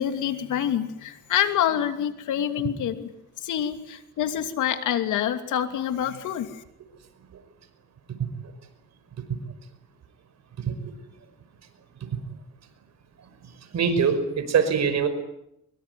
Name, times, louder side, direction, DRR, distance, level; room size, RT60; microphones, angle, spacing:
voice 1, 0.0-3.1 3.4-6.6, left 10 dB, 80° left, 8 dB, 2.9 m, -26 dB
voice 2, 13.7-15.1, right 6 dB, 60° right, 9 dB, 5.5 m, -22 dB
24.0 x 23.0 x 9.4 m, 0.78 s
cardioid pair, 90°, 30 cm